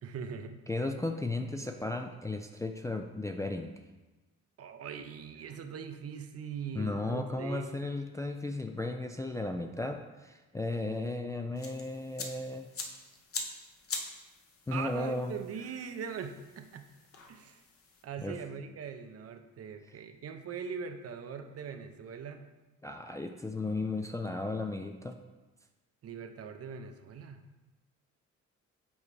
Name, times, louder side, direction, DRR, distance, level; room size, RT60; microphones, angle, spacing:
voice 1, 0.0-0.6 4.6-7.8 14.7-16.8 17.3-17.6 18.0-22.5 26.0-27.4, right 6 dB, 50° right, 7 dB, 0.6 m, -41 dB
voice 2, 0.7-3.8 6.7-12.7 14.7-15.3 18.2-18.4 22.8-25.1, left 2 dB, 10° left, 3 dB, 0.3 m, -35 dB
sound 1, 11.6-18.0, left 4 dB, 50° left, 0.9 m, -44 dB
7.1 x 4.3 x 3.2 m, 1.1 s
cardioid pair, 90°, 30 cm